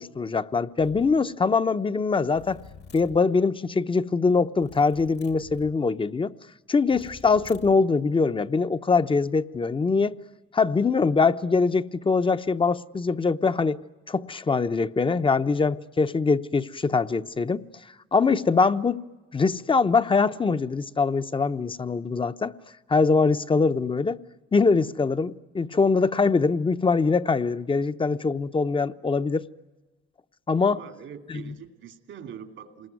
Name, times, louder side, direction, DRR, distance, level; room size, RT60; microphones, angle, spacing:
voice 1, 0.0-2.6 2.9-6.3 6.7-10.2 10.5-13.8 14.1-17.6 18.1-19.0 19.3-22.5 22.9-24.2 24.5-29.4 30.5-30.8 31.3-31.5, left 4 dB, 25° left, 0.8 m, -23 dB
sound 1, 0.8-1.2 2.4-3.3 4.6-5.8 6.9-7.8, left 5 dB, 60° left, 1.8 m, -47 dB
voice 2, 30.7-32.9, right 8 dB, 80° right, 2.5 m, -43 dB
28.0 x 20.5 x 9.4 m
cardioid pair, 90°, 20 cm